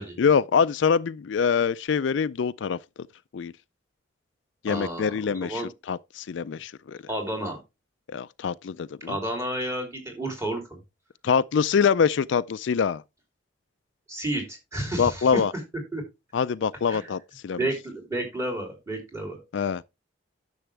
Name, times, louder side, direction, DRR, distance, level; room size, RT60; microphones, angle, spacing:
voice 1, 0.2-2.8 3.3-3.5 4.6-5.6 5.9-7.0 8.1-9.2 11.2-13.0 15.0-15.5 16.3-17.6 19.5-19.8, left 6 dB, 70° left, 0.4 m, -24 dB
voice 2, 4.6-5.7 7.1-7.6 9.0-10.8 14.1-15.4 15.9-16.0 16.9-17.1 17.5-19.4, right 1 dB, 15° right, 3.3 m, -31 dB
10.0 x 7.1 x 3.3 m
head